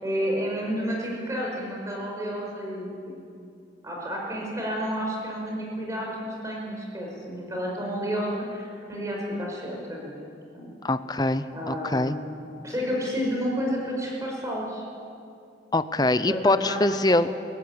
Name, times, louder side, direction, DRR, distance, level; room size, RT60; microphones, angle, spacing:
voice 1, 0.0-3.1 3.8-10.1 10.5-10.7 11.5-14.8 16.3-16.9 17.3-17.4, equal, 15° right, -2 dB, 5.6 m, -31 dB
voice 2, 10.8-12.1 15.7-17.3, left 2 dB, 20° left, 12 dB, 0.7 m, -23 dB
23.0 x 15.5 x 9.8 m, 2.4 s
head